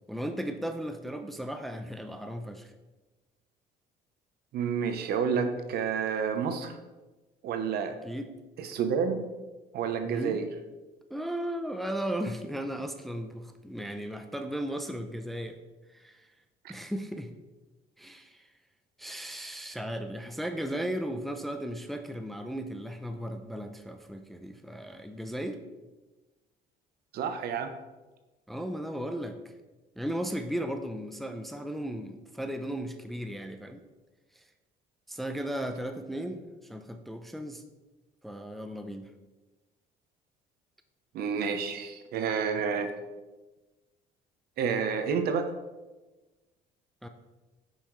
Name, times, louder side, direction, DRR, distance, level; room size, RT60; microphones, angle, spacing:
voice 1, 0.1-2.7 8.0-8.3 10.0-10.4 11.1-15.6 15.9-16.3 16.7-17.3 18.0-18.5 19.0-25.6 28.5-29.4 30.0-33.8 35.1-37.6 38.2-39.1 47.0-47.1, equal, ahead, 6 dB, 0.5 m, -36 dB
voice 2, 4.5-6.7 7.4-8.0 8.6-9.2 9.7-10.5 16.6-16.7 27.1-27.7 41.1-42.9 44.6-45.5, right 6 dB, 70° right, 8 dB, 0.8 m, -29 dB
8.4 x 5.6 x 3.1 m, 1.2 s
cardioid pair, 110°, 17 cm